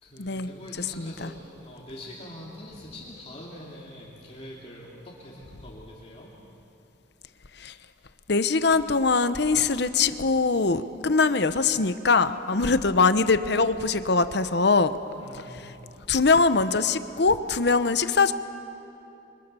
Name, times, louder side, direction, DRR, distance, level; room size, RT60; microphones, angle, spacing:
voice 1, 0.0-6.3 15.2-15.7, left 1 dB, 30° left, -4 dB, 2.8 m, -44 dB
voice 2, 1.0-1.3 7.6-7.7 8.3-14.9 16.1-18.3, left 4 dB, 55° left, 12 dB, 0.9 m, -22 dB
28.0 x 25.0 x 6.9 m, 2.9 s
head